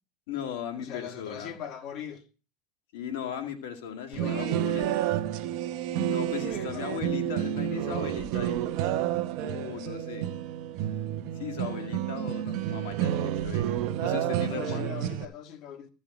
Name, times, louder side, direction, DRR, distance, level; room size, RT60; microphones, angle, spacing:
voice 1, 0.3-1.5 2.9-5.1 5.9-8.6 9.4-10.3 11.4-13.7 14.0-14.9, left 9 dB, 75° left, 2.1 m, -37 dB
voice 2, 0.8-2.2 4.1-5.0 6.2-7.0 14.5-15.9, left 8 dB, 55° left, 1.8 m, -41 dB
sound 1, 4.1-15.3, right 11 dB, 65° right, 0.9 m, -30 dB
14.5 x 5.5 x 6.2 m
hypercardioid pair, 90°, 0 cm